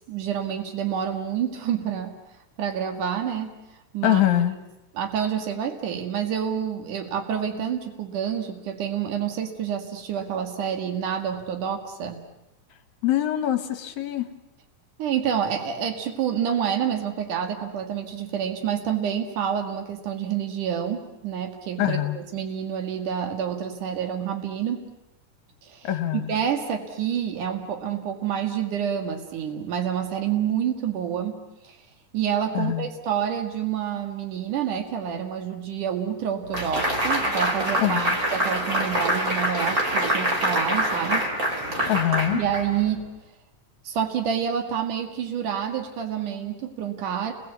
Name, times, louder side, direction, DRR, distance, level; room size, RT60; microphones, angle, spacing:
voice 1, 0.1-2.1 2.6-3.6 3.9-4.2 4.9-12.2 15.0-24.9 25.6-25.9 26.3-31.4 31.6-31.8 32.1-41.3 42.3-43.0 43.9-47.3, right 8 dB, 85° right, 5 dB, 3.6 m, -28 dB
voice 2, 4.0-4.6 13.0-14.3 21.8-22.2 25.8-26.3 32.5-32.9 37.8-38.2 41.9-42.4, left 12 dB, 70° left, 9 dB, 2.8 m, -24 dB
sound 1, 36.5-43.0, right 1 dB, 30° right, 4.0 m, -25 dB
29.5 x 22.0 x 8.3 m, 0.91 s
omnidirectional pair, 3.5 m